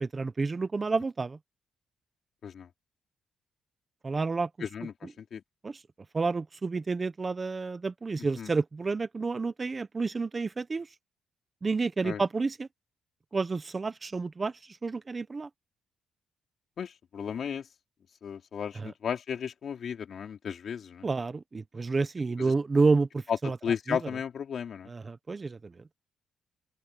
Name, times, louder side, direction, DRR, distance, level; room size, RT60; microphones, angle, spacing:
voice 1, 0.0-1.4 4.0-4.5 5.6-5.8 6.1-10.9 11.6-12.7 13.3-14.5 14.8-15.5 18.8-18.9 21.0-23.6 23.9-24.0 24.9-25.7, right 4 dB, 25° right, 0.8 m, -29 dB
voice 2, 4.6-5.4 8.2-8.5 12.0-12.2 16.8-17.7 18.2-21.1 22.4-22.5 23.3-24.9, left 7 dB, 55° left, 4.3 m, -34 dB
open air
cardioid pair, 120°, 0 cm